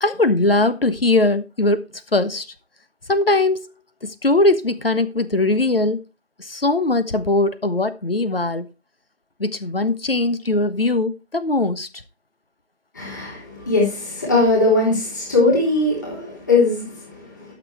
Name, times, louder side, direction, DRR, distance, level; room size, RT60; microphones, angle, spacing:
voice 1, 0.0-2.5 3.1-3.7 4.0-6.0 6.4-8.7 9.4-11.9, left 2 dB, 55° left, 1.3 m, -20 dB
voice 2, 12.9-17.5, left 2 dB, 15° left, 3.6 m, -20 dB
12.5 x 6.3 x 4.4 m
figure-of-eight pair, 170°, 34 cm